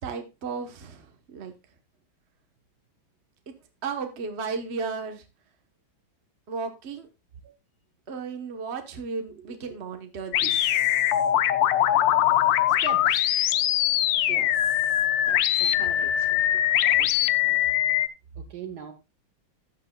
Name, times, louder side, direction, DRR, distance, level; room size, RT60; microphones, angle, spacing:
voice 1, 0.0-1.5 3.8-5.2 6.5-7.1 8.1-11.1 14.2-14.8 15.3-15.4 15.7-16.3, right 5 dB, 40° right, 6 dB, 1.3 m, -35 dB
sound 1, 10.3-18.1, left 12 dB, 70° left, 1.3 m, -22 dB
voice 2, 12.8-13.3 15.6-16.4 17.0-17.1 17.4-17.6 18.3-18.9, right 6 dB, 55° right, 8 dB, 1.6 m, -40 dB
14.0 x 9.6 x 2.3 m, 0.26 s
omnidirectional pair, 2.2 m